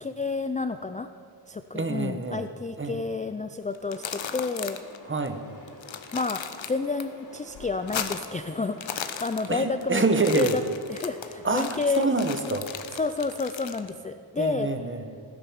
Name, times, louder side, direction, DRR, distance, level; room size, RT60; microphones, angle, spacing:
voice 1, 0.0-1.1 1.5-4.8 6.1-6.4 6.7-10.6 10.9-12.1 12.5-12.6 13.0-14.7, left 4 dB, 15° left, 9 dB, 0.4 m, -30 dB
voice 2, 1.7-2.4 2.8-3.0 5.1-5.4 9.5-10.6 11.4-12.7 14.4-15.1, right 3 dB, 25° right, 8 dB, 1.0 m, -26 dB
sound 1, 3.7-5.0 5.3-5.4 5.7-7.0 7.4-8.4 8.7-9.8 10.1-13.9, left 8 dB, 70° left, 1.0 m, -36 dB
sound 2, 3.9-12.5, left 2 dB, 40° left, 2.7 m, -49 dB
16.5 x 10.0 x 7.2 m, 2.3 s
wide cardioid pair, 160°, 48 cm